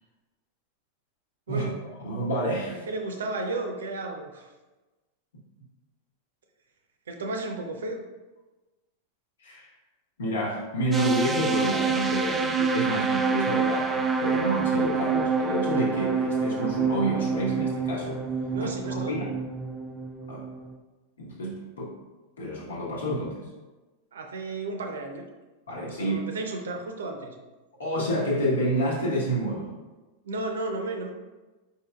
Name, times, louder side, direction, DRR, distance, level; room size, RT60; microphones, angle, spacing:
voice 1, 1.5-1.8 2.7-4.5 7.1-8.0 18.5-19.2 24.1-25.2 26.0-27.3 30.2-31.1, right 2 dB, 65° right, 4 dB, 0.6 m, -33 dB
voice 2, 2.0-2.8 9.4-9.7 10.2-18.2 18.6-18.7 19.1-19.3 20.3-20.5 21.2-21.9 22.4-23.5 25.7-26.2 27.8-29.7, right 1 dB, 65° left, -3 dB, 1.2 m, -29 dB
sound 1, 10.9-20.7, right 5 dB, 15° right, 0.4 m, -27 dB
4.7 x 4.5 x 2.3 m, 1.2 s
figure-of-eight pair, 90°, 0 cm